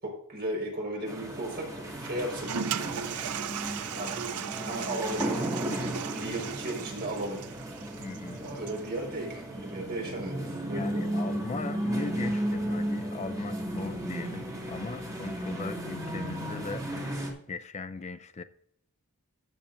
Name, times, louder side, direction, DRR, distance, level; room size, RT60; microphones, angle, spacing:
voice 1, 0.0-2.6 3.9-4.2 4.5-5.3 5.6-5.9 6.2-7.4 8.3-11.1, right 1 dB, 50° right, 4.8 m, -35 dB
sound 1, 1.1-17.3, right 1 dB, 15° right, 2.1 m, -34 dB
Toilet flush, 2.1-9.0, right 7 dB, 90° right, 0.6 m, -37 dB
voice 2, 8.0-8.4 10.7-16.9 17.1-18.4, left 4 dB, 30° left, 0.4 m, -39 dB
14.5 x 8.6 x 2.6 m
head